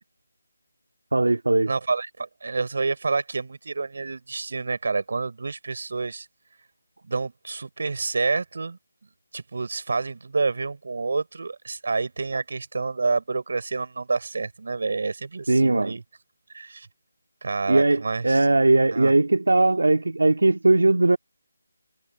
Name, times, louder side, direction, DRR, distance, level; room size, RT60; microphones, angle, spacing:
voice 1, 1.1-1.7 15.5-16.0 17.7-21.2, right 2 dB, 80° right, 1.9 m, -19 dB
voice 2, 1.7-6.3 7.0-8.8 9.3-16.0 16.5-16.9 17.4-18.5 18.9-19.2, right 4 dB, 60° right, 4.1 m, -28 dB
figure-of-eight pair, 160°, 0 cm